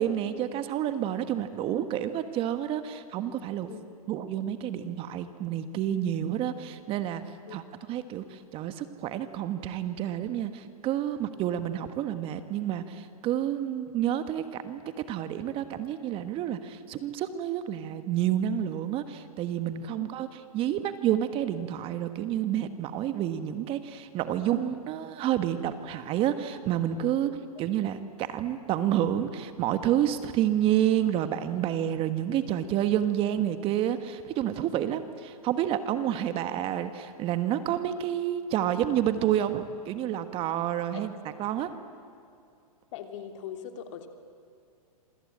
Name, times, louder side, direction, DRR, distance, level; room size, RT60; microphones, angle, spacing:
voice 1, 0.0-3.7 4.1-7.2 7.5-7.6 7.9-14.8 15.1-20.3 20.5-27.3 27.6-41.1 41.4-41.7, right 11 dB, 30° right, 10 dB, 1.4 m, -29 dB
voice 2, 42.9-44.1, left 9 dB, 55° left, 6 dB, 3.1 m, -40 dB
27.0 x 24.5 x 8.7 m, 2.4 s
hypercardioid pair, 140°, 19 cm